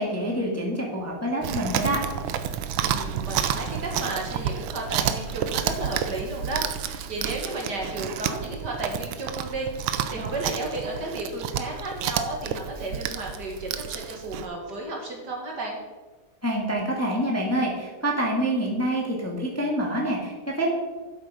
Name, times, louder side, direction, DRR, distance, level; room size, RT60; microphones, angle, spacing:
voice 1, 0.0-2.0 16.4-20.8, right 1 dB, 5° left, -2 dB, 1.7 m, -26 dB
Chewing mastication, 1.4-14.5, right 9 dB, 75° right, 1.4 m, -30 dB
voice 2, 2.8-15.8, right 2 dB, 55° right, 0 dB, 2.2 m, -33 dB
11.0 x 8.2 x 5.0 m, 1.3 s
omnidirectional pair, 2.3 m